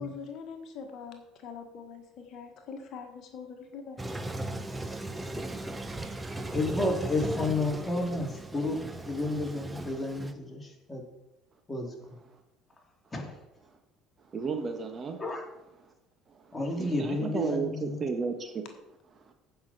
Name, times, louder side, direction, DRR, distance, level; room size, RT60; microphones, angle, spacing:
voice 1, 0.0-4.0, left 6 dB, 55° left, 4 dB, 1.5 m, -43 dB
Toilet flush, 4.0-10.3, right 2 dB, 15° right, 1.0 m, -37 dB
voice 2, 6.5-11.1 11.7-12.1 13.1-13.4 15.2-15.4 16.5-18.0, left 2 dB, 15° left, 0 dB, 2.9 m, -31 dB
voice 3, 14.3-15.2 16.8-18.6, right 5 dB, 35° right, 5 dB, 1.5 m, -33 dB
15.5 x 5.7 x 4.3 m, 0.91 s
hypercardioid pair, 60°, 0 cm